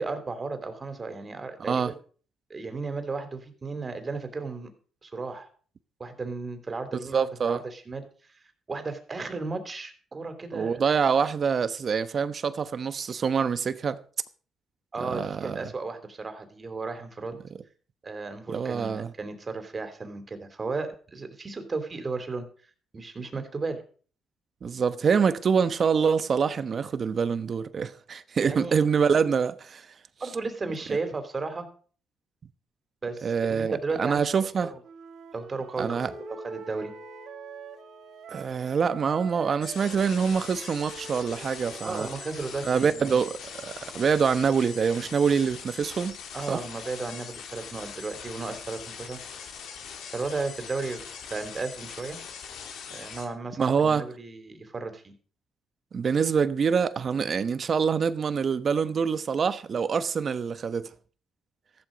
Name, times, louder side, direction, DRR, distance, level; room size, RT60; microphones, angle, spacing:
voice 1, 0.0-2.0 2.5-4.7 5.0-5.5 6.0-8.0 8.7-10.8 14.9-17.4 18.0-22.5 22.9-23.8 28.4-28.7 30.2-31.7 33.0-34.2 34.6-34.8 35.3-36.9 41.8-43.2 46.3-49.2 50.1-51.0 51.3-52.2 52.9-55.1, right 3 dB, 30° right, 3.3 m, -34 dB
voice 2, 7.1-7.6 10.5-14.0 15.0-15.7 18.5-19.1 24.6-29.9 33.2-34.7 35.8-36.1 38.3-42.1 42.6-46.2 46.5-46.6 53.6-54.0 55.9-60.9, right 6 dB, 45° right, 1.0 m, -25 dB
Wind instrument woodwind instrument, 34.8-38.5 38.8-42.8, right 8 dB, 70° right, 1.3 m, -45 dB
sound 1, 35.8-40.6, left 2 dB, 60° left, 6.6 m, -48 dB
sound 2, 39.6-53.3, left 7 dB, 80° left, 3.2 m, -42 dB
14.5 x 11.5 x 5.2 m
cardioid pair, 90°, 0 cm